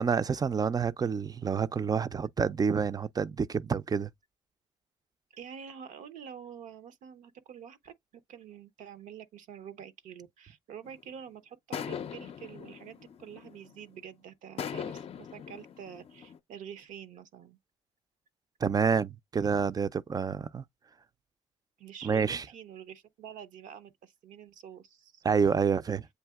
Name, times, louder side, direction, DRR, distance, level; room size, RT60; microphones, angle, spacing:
voice 1, 0.0-4.1 18.6-20.6 22.0-22.4 25.2-26.1, right 6 dB, 30° right, 0.4 m, -28 dB
voice 2, 5.3-7.9 8.3-17.6 21.8-25.2, right 8 dB, 75° right, 0.7 m, -47 dB
sound 1, 10.8-11.1 11.7-13.9 14.6-16.4, left 8 dB, 50° left, 0.5 m, -40 dB
7.9 x 2.7 x 2.3 m
supercardioid pair, 65°, 13 cm